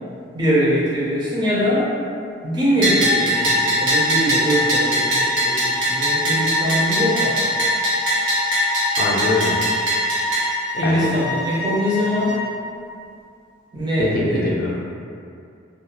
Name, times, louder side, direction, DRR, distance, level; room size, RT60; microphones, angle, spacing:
voice 1, 0.3-1.9 2.4-7.4 10.8-12.4 13.7-14.5, equal, 25° right, -8 dB, 0.4 m, -22 dB
Bell, 2.8-10.4, equal, 90° right, 0.8 m, -21 dB
sound 1, 3.3-12.5, equal, 65° right, 1.1 m, -28 dB
voice 2, 9.0-9.6 10.8-11.1 14.0-14.8, left 2 dB, 50° left, -3 dB, 0.4 m, -22 dB
2.3 x 2.2 x 2.8 m, 2.4 s
head